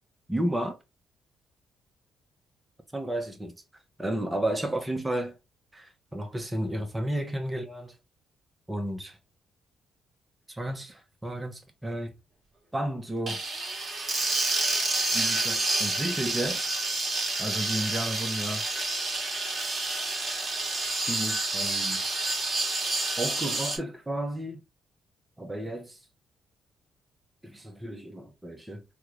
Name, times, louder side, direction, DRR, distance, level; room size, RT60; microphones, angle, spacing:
voice 1, 0.3-0.8 2.9-3.6 4.0-5.4 5.7-8.0 8.7-9.2 10.5-12.1 12.7-13.4 15.1-16.8 17.4-18.7 21.0-22.0 23.2-24.6 25.4-26.0 27.4-28.8, right 1 dB, 10° right, 0.9 m, -32 dB
sound 1, 13.3-23.8, right 2 dB, 30° right, 1.4 m, -29 dB
3.5 x 2.3 x 3.0 m
cardioid pair, 90°, 0 cm